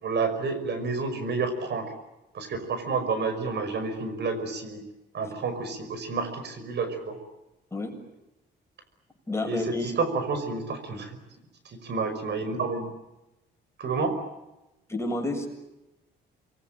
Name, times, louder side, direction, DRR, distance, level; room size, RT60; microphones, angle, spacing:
voice 1, 0.0-1.9 2.3-4.9 5.1-7.2 9.4-11.1 11.7-12.9 13.8-14.2, right 4 dB, 60° right, 9 dB, 5.5 m, -30 dB
voice 2, 9.3-10.1 14.9-15.5, left 2 dB, 15° left, 2 dB, 7.3 m, -30 dB
27.0 x 23.0 x 8.9 m, 0.96 s
cardioid pair, 90°, 20 cm